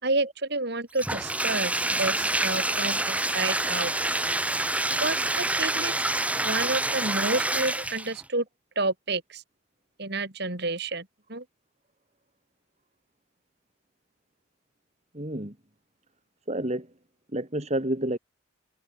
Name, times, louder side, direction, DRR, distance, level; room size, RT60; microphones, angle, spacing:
voice 1, 0.0-3.9 5.0-5.9 6.4-8.5 8.8-9.4 10.0-11.4, right 2 dB, 55° right, 3.7 m, -30 dB
Bathtub (filling or washing), 1.0-8.2, right 2 dB, 5° right, 6.8 m, -27 dB
voice 2, 15.1-15.5 16.5-16.9 17.3-18.2, right 1 dB, 35° right, 2.5 m, -29 dB
head